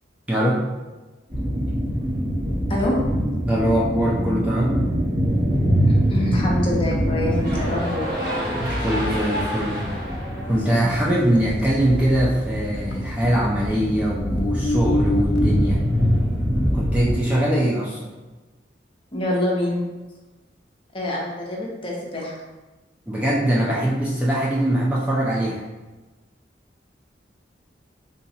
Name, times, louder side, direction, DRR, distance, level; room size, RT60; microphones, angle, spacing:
voice 1, 0.3-0.6 3.4-4.8 8.6-9.8 10.5-15.8 16.7-18.1 23.1-25.6, right 1 dB, 10° right, -6 dB, 0.4 m, -22 dB
sound 1, 1.3-17.1, equal, 30° right, 1.4 m, -24 dB
voice 2, 5.9-8.1 19.1-19.8 20.9-22.4, left 1 dB, 30° left, -3 dB, 0.7 m, -25 dB
sound 2, 6.9-11.5 11.9-12.4 12.9-13.0 14.4-15.7, left 1 dB, 65° left, 0.4 m, -29 dB
sound 3, 7.2-11.4, equal, 55° right, 1.0 m, -31 dB
3.9 x 2.3 x 2.7 m, 1.2 s
head